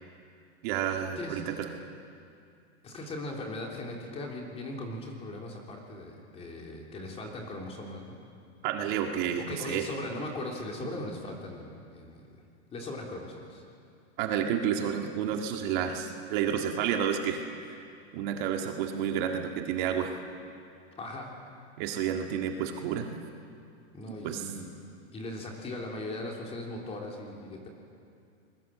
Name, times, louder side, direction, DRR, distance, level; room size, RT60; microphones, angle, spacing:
voice 1, 0.6-1.7 8.6-9.9 14.2-17.8 18.1-20.2 21.8-23.1 24.2-24.4, right 8 dB, 45° right, 3 dB, 1.9 m, -30 dB
voice 2, 2.8-8.2 9.4-12.4 12.7-13.6 21.0-21.3 23.9-24.7 25.1-27.7, left 2 dB, 15° left, 0 dB, 3.3 m, -39 dB
27.0 x 21.0 x 7.6 m, 2.4 s
supercardioid pair, 160°, 34 cm